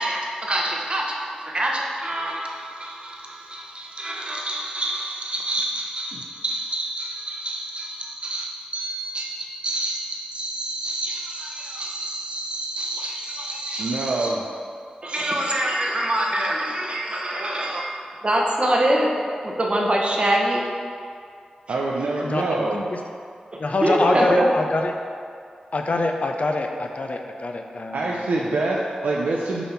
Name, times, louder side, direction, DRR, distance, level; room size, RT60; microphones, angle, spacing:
voice 1, 0.0-14.3 15.0-17.8 18.2-19.1 19.4-20.6 23.8-24.4, right 1 dB, 40° right, -2 dB, 1.0 m, -26 dB
voice 2, 13.8-14.4 21.7-22.8 24.0-24.2 27.9-29.6, right 2 dB, 90° right, -3 dB, 0.5 m, -25 dB
voice 3, 22.2-23.0 23.6-24.9 25.7-28.3, left 2 dB, 55° left, 3 dB, 0.5 m, -25 dB
6.9 x 2.9 x 5.6 m, 2.3 s
cardioid pair, 55°, 3 cm